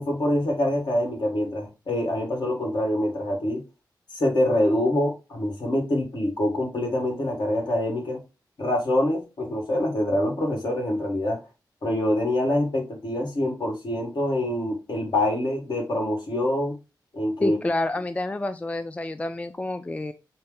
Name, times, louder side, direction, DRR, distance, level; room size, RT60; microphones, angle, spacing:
voice 1, 0.0-3.6 4.1-8.2 8.6-11.4 11.8-16.8 17.1-17.6, left 1 dB, 70° left, 1.7 m, -25 dB
voice 2, 17.4-20.1, left 2 dB, 15° left, 0.3 m, -28 dB
5.4 x 2.2 x 3.7 m
cardioid pair, 60°, 8 cm